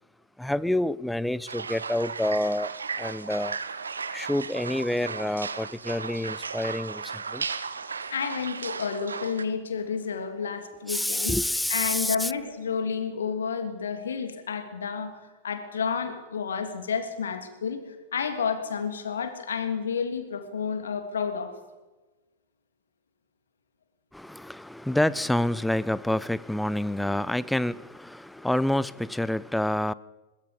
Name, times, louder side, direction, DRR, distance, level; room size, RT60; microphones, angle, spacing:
voice 1, 0.4-2.7 3.0-3.6 4.1-7.4 10.9-12.3 24.1-29.9, left 1 dB, 5° left, 0.7 m, -28 dB
sound 1, 1.5-9.4, right 5 dB, 75° right, 1.2 m, -35 dB
voice 2, 8.1-11.4 11.7-15.1 15.4-21.6, left 6 dB, 70° left, 3.1 m, -30 dB
22.0 x 22.0 x 5.4 m
figure-of-eight pair, 90°, 0 cm